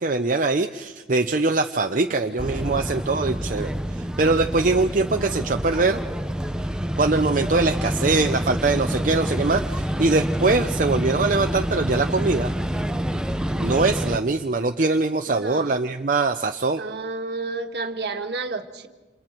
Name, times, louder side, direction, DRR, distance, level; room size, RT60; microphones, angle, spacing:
voice 1, 0.0-6.0 7.0-12.5 13.6-16.8, right 3 dB, 45° right, 5 dB, 0.6 m, -22 dB
sound 1, 2.4-14.2, equal, 5° right, 0.8 m, -27 dB
voice 2, 15.2-15.7 16.8-18.9, right 3 dB, 65° right, 6 dB, 1.5 m, -31 dB
29.0 x 27.5 x 4.5 m, 1.2 s
head